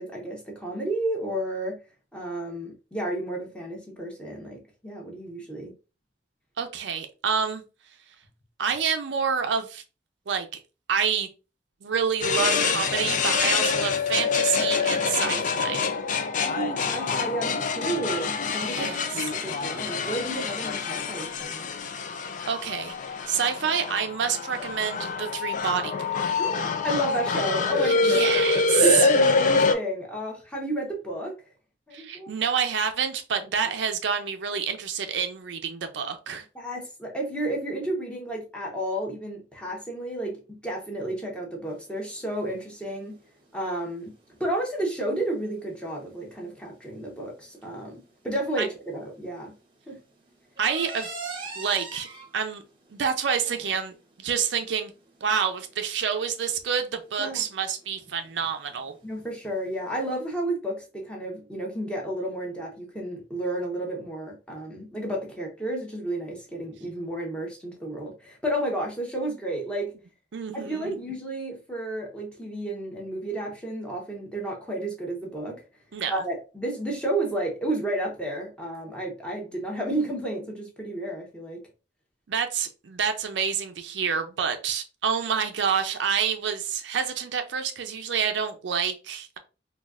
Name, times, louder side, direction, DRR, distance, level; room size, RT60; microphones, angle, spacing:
voice 1, 0.0-1.8 2.1-5.7 15.2-15.4 16.5-21.7 26.4-26.6 26.8-28.2 28.8-31.3 31.9-32.3 36.5-43.2 43.5-44.1 44.4-49.5 49.9-50.0 57.2-57.4 59.0-69.9 70.5-75.6 76.1-81.6, right 1 dB, 5° left, 0.9 m, -31 dB
voice 2, 6.6-7.6 8.6-9.8 10.3-10.5 10.9-11.3 11.8-15.8 18.6-19.1 22.5-22.9 23.3-25.9 26.3-26.4 27.8-29.1 31.9-36.5 48.6-48.7 50.6-51.1 51.6-52.1 52.3-52.6 52.9-53.9 54.2-54.9 55.2-58.9 70.3-71.0 75.9-76.2 82.3-89.4, right 7 dB, 75° right, 0.5 m, -28 dB
sound 1, 12.2-29.7, left 4 dB, 45° left, 0.4 m, -26 dB
sound 2, 41.7-60.3, right 4 dB, 30° right, 0.8 m, -46 dB
4.0 x 2.3 x 2.4 m
head